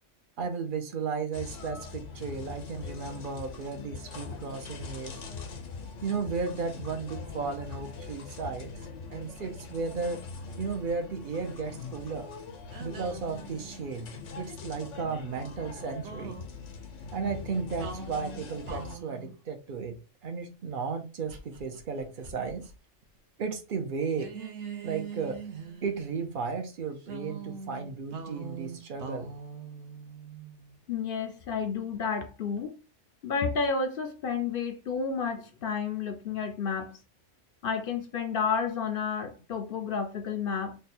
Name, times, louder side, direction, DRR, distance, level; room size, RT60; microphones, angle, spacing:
voice 1, 0.4-5.2 6.0-8.7 9.1-10.2 10.6-12.3 12.8-14.1 14.4-16.4 17.1-20.0 20.2-22.7 23.4-24.3 24.8-25.4 25.8-29.3, right 5 dB, 50° right, 0.8 m, -34 dB
sound 1, 1.3-19.0, left 4 dB, 90° left, 1.2 m, -42 dB
sound 2, 12.7-14.0 15.0-16.5 17.8-19.4 21.3-22.7 23.0-23.2 24.1-26.2 27.0-30.8, right 5 dB, 70° right, 1.1 m, -43 dB
voice 2, 30.9-32.7 33.2-37.0 37.6-40.8, left 5 dB, 60° left, 0.6 m, -31 dB
3.4 x 2.2 x 4.2 m
omnidirectional pair, 1.2 m